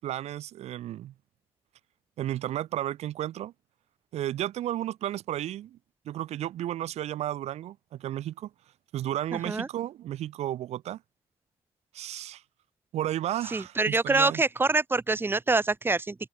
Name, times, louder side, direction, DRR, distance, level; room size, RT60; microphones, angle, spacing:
voice 1, 0.0-1.1 2.2-3.5 4.1-5.8 6.0-8.5 8.9-11.0 11.9-12.4 12.9-14.4, right 12 dB, 80° right, 6.5 m, -33 dB
voice 2, 9.3-9.7 13.5-16.1, right 3 dB, 20° right, 4.8 m, -25 dB
cardioid pair, 115°, 11 cm